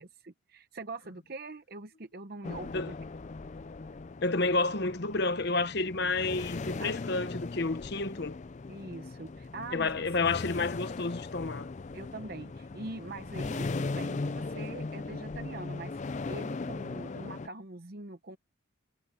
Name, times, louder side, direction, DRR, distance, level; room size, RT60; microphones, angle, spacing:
voice 1, 0.0-2.9 6.8-6.9 8.7-10.0 11.9-18.4, right 2 dB, 50° right, 0.9 m, -43 dB
sound 1, 2.4-17.5, left 3 dB, 35° left, 0.4 m, -38 dB
voice 2, 4.2-8.4 9.7-11.7, left 3 dB, 55° left, 1.1 m, -30 dB
head